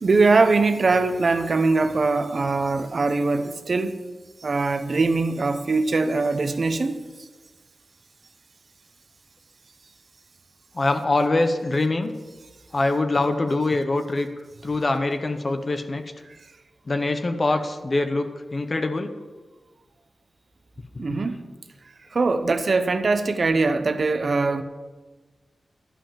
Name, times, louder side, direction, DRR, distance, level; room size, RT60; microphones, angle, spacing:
voice 1, 0.0-4.0 4.4-7.0 21.0-21.4 22.1-24.6, right 3 dB, 50° right, 9 dB, 0.8 m, -22 dB
voice 2, 10.7-12.1 12.7-14.3 14.6-16.0 16.9-19.1 21.1-21.2, left 2 dB, 40° left, 7 dB, 0.8 m, -24 dB
11.5 x 5.5 x 8.8 m, 1.3 s
wide cardioid pair, 100°, 0 cm